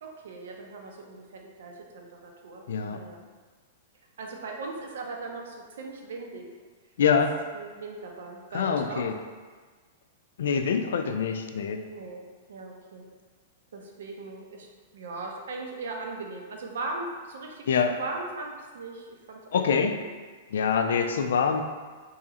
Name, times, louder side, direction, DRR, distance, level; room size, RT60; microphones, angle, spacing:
voice 1, 0.0-3.2 4.2-6.4 7.5-9.1 11.9-13.1 13.7-14.7 14.9-19.7 19.9-20.1 20.9-21.3, right 3 dB, 80° right, 1 dB, 0.6 m, -39 dB
voice 2, 2.7-3.0 7.0-7.4 8.5-9.2 10.4-11.8 17.7-18.0 19.5-20.0 20.5-21.6, left 6 dB, 85° left, 6 dB, 0.3 m, -25 dB
3.1 x 2.9 x 3.6 m, 1.4 s
supercardioid pair, 175°, 0 cm